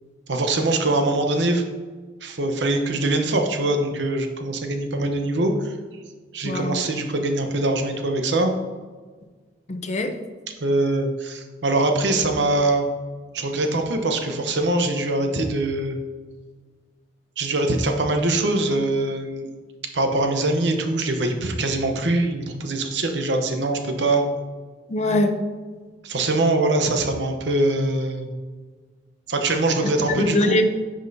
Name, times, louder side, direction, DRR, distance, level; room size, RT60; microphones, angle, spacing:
voice 1, 0.3-1.6 2.2-5.7 6.3-8.5 10.6-12.9 13.3-16.0 17.4-19.5 19.9-24.2 26.0-28.3 29.3-30.6, right 2 dB, 70° right, 4 dB, 0.8 m, -23 dB
voice 2, 6.4-6.8 9.7-10.2 24.9-25.4 30.2-30.6, left 1 dB, 40° left, 6 dB, 0.6 m, -22 dB
9.9 x 5.3 x 2.7 m, 1.4 s
head